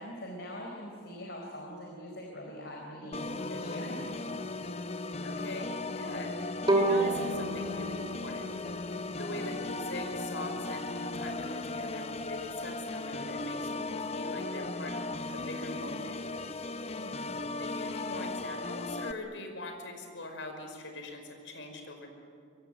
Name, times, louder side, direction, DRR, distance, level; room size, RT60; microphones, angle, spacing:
voice 1, 0.0-4.4 16.8-17.4, equal, 55° left, 0 dB, 4.2 m, -43 dB
Organ, 3.1-19.1, left 2 dB, 30° left, 0.7 m, -37 dB
voice 2, 5.2-6.4 6.7-8.5 9.2-16.2 17.6-22.1, left 1 dB, 70° left, 4 dB, 5.4 m, -42 dB
Bowed string instrument, 6.7-9.7, right 2 dB, 20° right, 3.0 m, -31 dB
24.0 x 24.0 x 9.9 m, 2.4 s
head